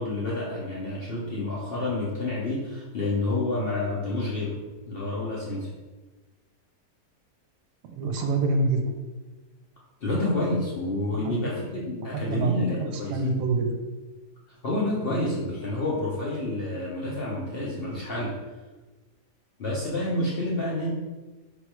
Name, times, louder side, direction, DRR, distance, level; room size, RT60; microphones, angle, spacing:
voice 1, 0.0-4.6 4.9-5.7 8.2-8.3 10.0-13.4 14.6-18.3 19.6-20.9, left 2 dB, 50° left, -6 dB, 0.7 m, -29 dB
voice 2, 7.8-8.8 11.2-11.3 12.1-13.7 15.1-15.2, right 3 dB, 85° right, 4 dB, 1.2 m, -26 dB
3.6 x 3.1 x 4.6 m, 1.2 s
omnidirectional pair, 1.8 m